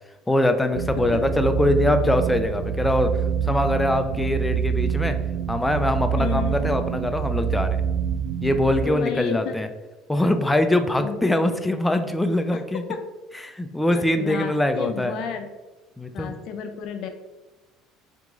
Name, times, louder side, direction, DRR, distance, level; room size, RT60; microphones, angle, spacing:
voice 1, 0.3-3.1 3.4-5.1 5.5-7.8 8.4-9.7 10.1-12.8 13.4-15.2 16.0-16.3, left 1 dB, 10° left, 7 dB, 0.4 m, -23 dB
sound 1, 0.7-8.9, right 7 dB, 65° right, 0.4 m, -26 dB
voice 2, 6.2-6.7 8.8-9.6 11.0-11.2 12.9-13.0 13.9-15.5 16.1-17.1, left 8 dB, 65° left, 7 dB, 0.5 m, -32 dB
3.7 x 2.9 x 3.6 m, 1.1 s
supercardioid pair, 90°, 0 cm